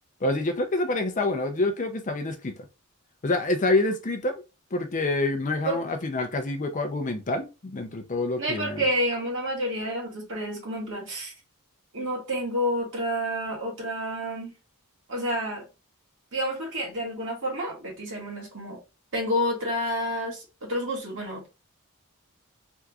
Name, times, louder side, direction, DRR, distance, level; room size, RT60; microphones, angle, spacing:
voice 1, 0.2-2.6 3.2-4.4 4.7-8.8, left 2 dB, 35° left, 0.5 m, -27 dB
voice 2, 8.4-11.3 11.9-14.5 15.1-15.6 16.3-18.8 19.1-21.5, equal, 55° right, 1.7 m, -29 dB
3.5 x 2.9 x 2.4 m
head